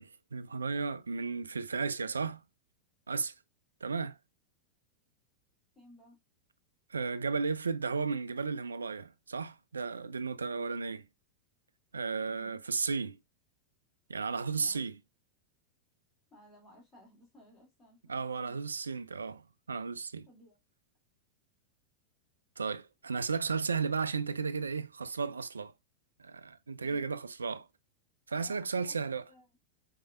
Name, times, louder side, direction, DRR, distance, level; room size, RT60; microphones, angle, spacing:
voice 1, 0.0-2.4 3.1-3.3 3.8-4.2 6.9-11.0 11.9-13.2 14.1-14.9 18.1-19.4 19.7-20.3 22.6-25.7 26.2-27.7 28.3-29.2, right 5 dB, 75° right, 0.3 m, -34 dB
voice 2, 5.8-6.2 10.5-10.7 12.3-12.6 14.5-14.8 16.3-18.6 20.3-20.6 26.8-27.0 28.3-29.0 29.3-29.5, equal, 10° left, 2.0 m, -58 dB
4.7 x 3.2 x 2.2 m
figure-of-eight pair, 90°, 0 cm